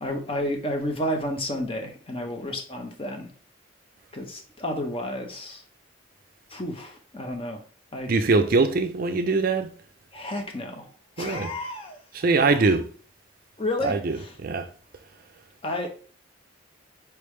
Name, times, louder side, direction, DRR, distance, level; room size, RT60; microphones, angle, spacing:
voice 1, 0.0-3.3 4.1-5.6 6.5-7.6 7.9-8.1 10.1-10.9 11.2-12.0 12.5-12.6 13.6-14.3 15.6-15.9, left 1 dB, 30° left, 0.8 m, -31 dB
voice 2, 8.1-9.7 11.2-11.5 12.1-12.9 13.8-14.7, right 3 dB, 50° right, 0.4 m, -22 dB
4.5 x 3.4 x 3.1 m
head